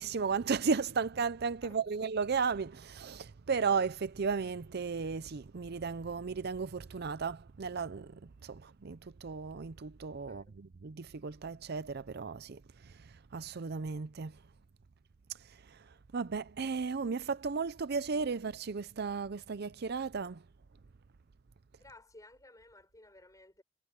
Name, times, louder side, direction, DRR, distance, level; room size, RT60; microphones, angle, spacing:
voice 1, 0.0-14.4 15.4-20.4, right 5 dB, 55° right, 0.6 m, -35 dB
voice 2, 21.8-23.6, left 2 dB, 20° left, 7.0 m, -56 dB
head